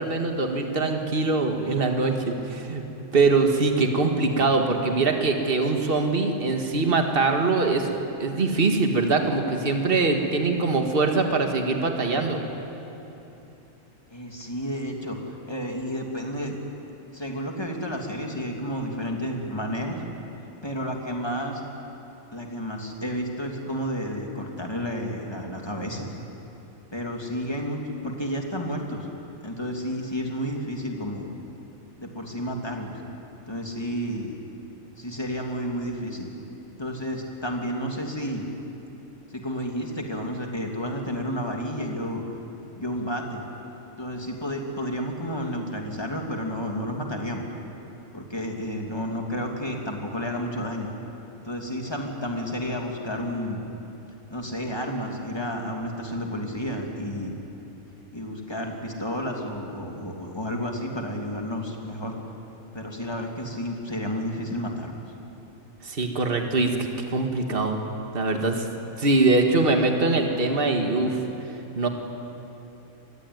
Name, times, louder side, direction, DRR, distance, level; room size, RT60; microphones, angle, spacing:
voice 1, 0.0-2.8 3.1-7.9 8.2-12.4 65.8-67.8 68.1-68.6 69.0-71.2 71.8-71.9, right 3 dB, 40° right, 4 dB, 2.1 m, -23 dB
voice 2, 14.1-16.6 17.1-20.0 20.6-21.6 22.3-26.1 26.9-29.1 29.4-31.3 32.0-32.9 33.5-34.3 35.0-36.3 36.8-38.4 39.3-42.2 42.8-43.4 44.0-47.4 48.1-50.9 51.4-53.6 54.3-57.3 58.1-62.1 62.7-65.0, equal, 15° left, 1 dB, 2.9 m, -31 dB
26.0 x 20.0 x 9.6 m, 3.0 s
omnidirectional pair, 1.5 m